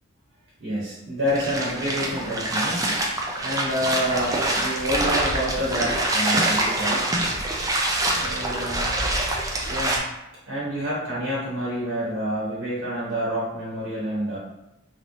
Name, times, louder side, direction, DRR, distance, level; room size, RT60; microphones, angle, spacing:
voice 1, 0.6-2.9 3.4-7.0 8.2-8.9 9.7-10.0 10.5-14.4, equal, 60° right, -7 dB, 1.0 m, -28 dB
sound 1, 1.3-10.0, right 1 dB, 15° right, 0.4 m, -25 dB
3.0 x 2.9 x 2.7 m, 0.93 s
head